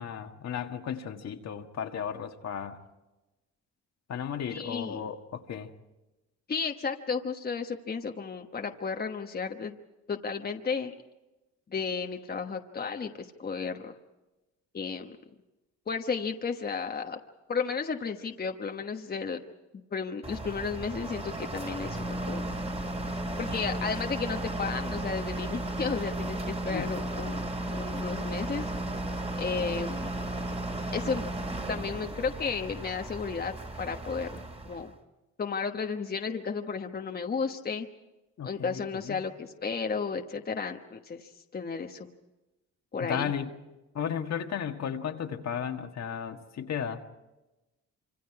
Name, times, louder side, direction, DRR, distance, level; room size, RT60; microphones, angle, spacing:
voice 1, 0.0-2.8 4.1-5.7 26.7-27.0 38.4-39.2 43.0-43.5 43.9-47.0, left 8 dB, 60° left, 4 dB, 1.7 m, -34 dB
voice 2, 4.5-5.1 6.5-9.7 10.1-10.9 11.7-13.9 14.7-15.2 15.9-17.2 17.5-19.4 19.9-22.4 23.4-28.6 29.3-30.5 30.9-31.3 31.7-34.9 35.4-37.9 38.4-42.1 42.9-43.3, left 5 dB, 30° left, 4 dB, 1.2 m, -33 dB
sound 1, 20.2-34.9, right 1 dB, 20° right, 2.6 m, -34 dB
26.5 x 26.0 x 4.8 m, 1.0 s
cardioid pair, 90°, 30 cm